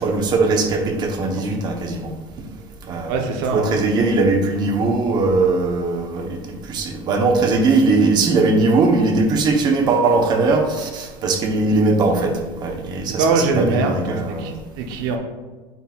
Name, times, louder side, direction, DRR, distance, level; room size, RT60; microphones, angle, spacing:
voice 1, 0.0-2.1 2.9-6.4 6.7-14.5, right 3 dB, 35° right, 4 dB, 1.0 m, -19 dB
voice 2, 3.1-3.7 13.1-15.2, right 4 dB, 80° right, 3 dB, 1.0 m, -22 dB
9.3 x 4.4 x 2.4 m, 1.3 s
supercardioid pair, 140°, 12 cm